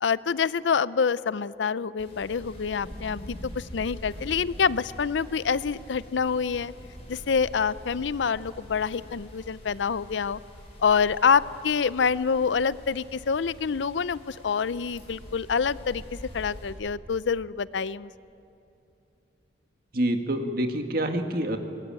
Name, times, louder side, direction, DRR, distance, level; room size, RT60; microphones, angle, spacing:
voice 1, 0.0-6.7 7.1-10.4 10.8-18.1, left 6 dB, 75° left, 18 dB, 0.5 m, -26 dB
sound 1, 2.0-16.7, equal, 30° left, 7.1 m, -44 dB
voice 2, 19.9-21.6, right 1 dB, 50° right, 5 dB, 1.9 m, -27 dB
24.0 x 19.5 x 9.0 m, 2.7 s
head